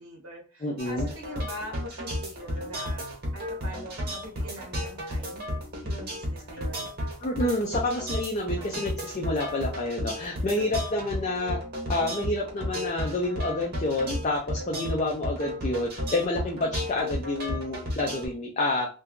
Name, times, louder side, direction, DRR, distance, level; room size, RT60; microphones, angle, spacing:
voice 1, 0.0-5.5 5.8-6.9, equal, 70° right, 0 dB, 0.8 m, -43 dB
voice 2, 0.6-1.1 7.2-11.6 11.9-18.9, left 2 dB, 30° left, -1 dB, 0.4 m, -29 dB
sound 1, 0.8-18.3, equal, 45° right, 1.1 m, -33 dB
2.6 x 2.2 x 3.6 m, 0.37 s
head